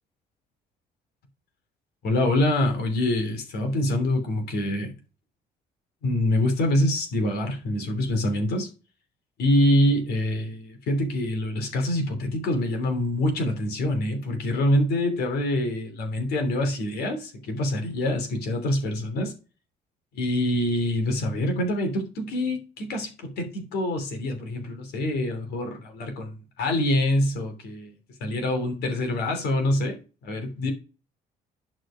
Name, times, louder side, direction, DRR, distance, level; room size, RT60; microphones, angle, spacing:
voice 1, 2.0-4.9 6.0-8.7 9.4-19.3 20.1-30.7, left 1 dB, 70° left, 3.2 m, -25 dB
11.0 x 4.9 x 5.1 m
cardioid pair, 110°, 17 cm